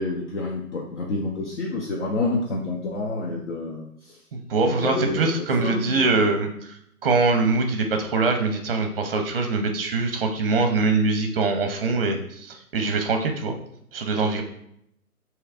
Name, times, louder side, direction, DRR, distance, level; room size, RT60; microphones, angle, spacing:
voice 1, 0.0-3.8 4.6-6.1, left 2 dB, 50° left, -1 dB, 0.8 m, -28 dB
voice 2, 4.3-6.8 7.0-13.5 13.9-14.4, right 3 dB, 40° right, 5 dB, 0.7 m, -23 dB
6.3 x 3.0 x 2.4 m, 0.73 s
figure-of-eight pair, 140°, 46 cm